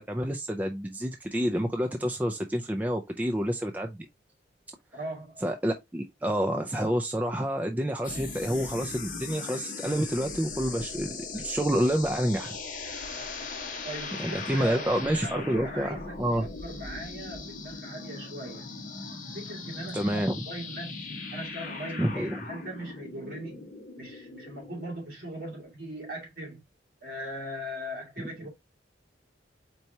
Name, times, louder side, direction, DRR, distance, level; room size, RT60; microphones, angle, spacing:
voice 1, 0.0-4.1 5.4-12.6 14.2-16.5 19.9-20.3 22.0-22.5, equal, 10° right, 0.4 m, -28 dB
voice 2, 4.9-5.4 13.8-18.7 19.3-23.7 24.0-26.6 27.0-28.5, right 1 dB, 50° right, 2.1 m, -39 dB
sound 1, 8.0-24.9, left 4 dB, 45° left, 1.0 m, -39 dB
4.6 x 4.3 x 2.7 m
head